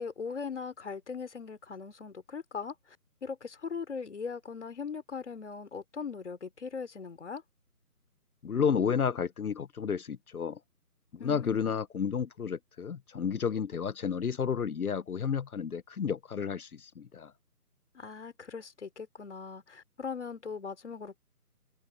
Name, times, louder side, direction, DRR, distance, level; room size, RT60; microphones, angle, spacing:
voice 1, 0.0-2.8 3.2-7.4 11.2-11.8 17.9-21.2, left 5 dB, 45° left, 3.6 m, -40 dB
voice 2, 8.4-10.6 11.1-17.3, left 7 dB, 65° left, 0.8 m, -31 dB
figure-of-eight pair, 165°, 47 cm